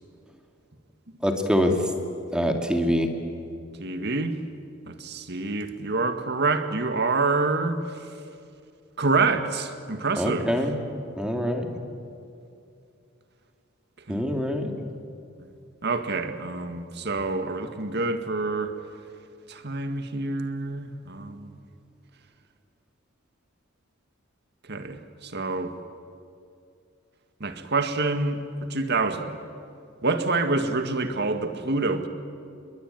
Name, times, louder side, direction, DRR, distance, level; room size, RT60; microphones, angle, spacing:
voice 1, 1.2-1.7 2.3-3.1 10.2-10.7 11.2-11.8 14.1-14.7, equal, 5° right, 4 dB, 2.4 m, -24 dB
voice 2, 3.8-4.3 4.9-7.8 9.0-10.5 14.1-14.4 15.8-18.7 19.5-21.6 24.6-25.7 27.4-28.4 28.7-29.4 30.0-32.1, right 3 dB, 55° right, 8 dB, 2.0 m, -27 dB
28.5 x 22.0 x 9.2 m, 2.5 s
head